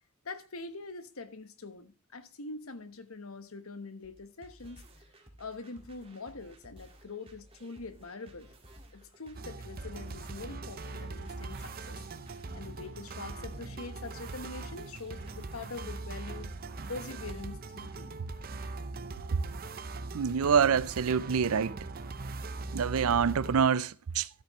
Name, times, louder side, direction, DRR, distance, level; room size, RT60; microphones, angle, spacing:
voice 1, 0.2-4.8 5.4-8.5 8.9-16.5 16.9-18.2, left 3 dB, 75° left, 1.1 m, -44 dB
sound 1, 4.0-18.4, right 1 dB, 25° right, 2.0 m, -56 dB
sound 2, 9.3-23.6, right 3 dB, 45° right, 0.7 m, -41 dB
voice 2, 20.1-21.8 22.7-24.3, right 6 dB, 80° right, 0.5 m, -26 dB
13.0 x 8.5 x 3.1 m
head